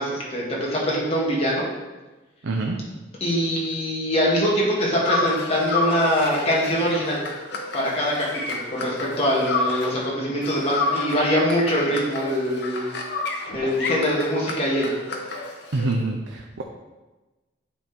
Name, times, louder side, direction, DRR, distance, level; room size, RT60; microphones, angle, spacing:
voice 1, 0.0-1.7 3.2-7.2 7.7-12.9 13.5-14.9, equal, 30° left, -5 dB, 1.8 m, -23 dB
voice 2, 2.4-2.8 15.7-16.6, right 2 dB, 85° right, 1 dB, 0.6 m, -26 dB
sound 1, 5.0-10.1 10.4-15.9, left 3 dB, 60° left, 0.9 m, -30 dB
9.2 x 4.4 x 3.5 m, 1.2 s
head